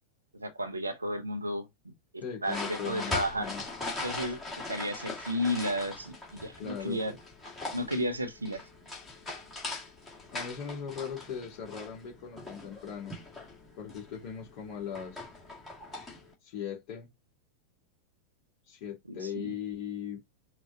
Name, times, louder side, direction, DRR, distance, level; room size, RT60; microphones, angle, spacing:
voice 1, 0.3-1.9 2.4-3.5 4.0-4.4 4.7-7.2 7.7-8.6 19.1-19.5, equal, 80° right, 0.9 m, -33 dB
voice 2, 2.2-3.6 6.6-7.0 10.3-13.2 13.8-15.2 16.4-17.1 18.7-20.2, left 8 dB, 45° left, 3.0 m, -39 dB
sound 1, 2.5-16.3, left 2 dB, 15° left, 2.2 m, -41 dB
5.9 x 2.5 x 2.8 m
figure-of-eight pair, 90°, 0 cm